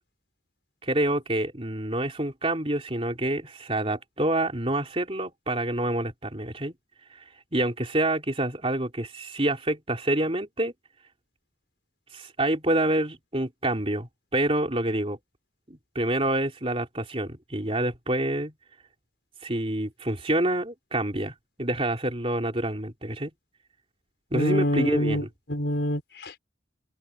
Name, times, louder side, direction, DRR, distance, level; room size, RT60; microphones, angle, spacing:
voice 1, 0.8-6.7 7.5-10.7 12.1-15.2 15.7-18.5 19.4-23.3 24.3-25.3, right 1 dB, 30° right, 3.5 m, -27 dB
voice 2, 24.3-26.4, equal, 60° left, 5.8 m, -26 dB
open air
head